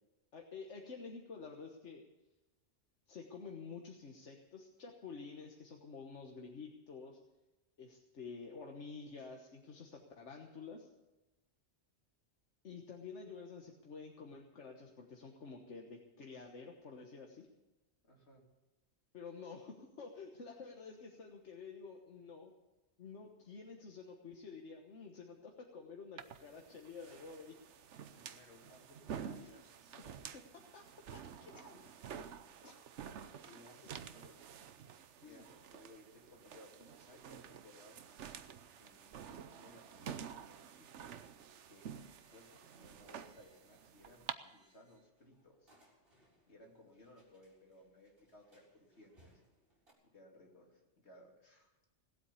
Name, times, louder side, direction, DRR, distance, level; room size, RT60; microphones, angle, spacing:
voice 1, 0.3-2.0 3.1-7.2 7.8-10.9 12.6-17.5 19.1-22.5 23.0-27.5 29.4-29.5 30.3-30.8 31.1-31.5 33.4-33.9 35.2-35.4, left 4 dB, 90° left, 1 dB, 1.6 m, -50 dB
voice 2, 18.0-18.4 28.1-30.3 31.5-31.8 32.6-32.8 33.5-34.4 35.2-38.1 38.8-41.1 41.7-45.7 46.5-49.4 50.0-51.8, left 1 dB, 70° left, -1 dB, 3.2 m, -61 dB
sound 1, 26.2-44.3, right 8 dB, 90° right, 1.1 m, -50 dB
sound 2, 32.1-49.9, right 1 dB, 55° right, 4.4 m, -74 dB
18.0 x 8.4 x 8.4 m, 1.0 s
omnidirectional pair, 1.2 m